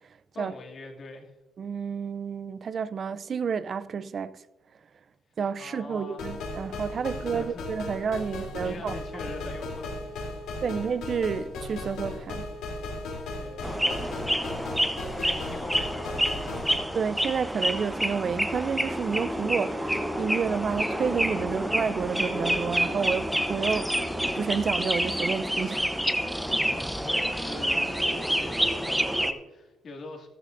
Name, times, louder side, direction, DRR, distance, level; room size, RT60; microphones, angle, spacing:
voice 1, 0.3-1.3 5.6-6.3 7.1-7.7 7.9-10.4 13.4-16.8 26.4-30.3, left 3 dB, 50° left, 2.3 m, -44 dB
voice 2, 1.6-4.3 5.4-9.2 10.6-12.5 16.9-23.9 24.3-26.0, right 6 dB, 50° right, 0.4 m, -30 dB
sound 1, 6.2-16.7, left 2 dB, 85° left, 3.1 m, -36 dB
sound 2, 13.6-29.3, equal, ahead, 0.8 m, -28 dB
14.0 x 13.0 x 2.6 m
cardioid pair, 90°, 0 cm